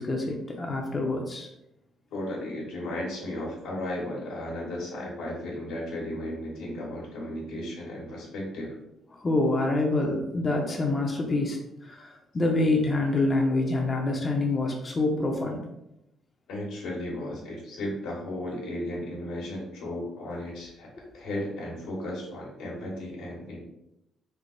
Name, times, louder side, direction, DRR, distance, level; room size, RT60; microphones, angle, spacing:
voice 1, 0.0-1.5 9.1-15.7 21.0-21.1, left 2 dB, 30° left, 0 dB, 0.6 m, -26 dB
voice 2, 2.1-8.7 16.5-20.9 21.1-23.6, left 1 dB, 90° left, -3 dB, 1.2 m, -35 dB
3.3 x 2.0 x 3.7 m, 0.84 s
cardioid pair, 90°, 0 cm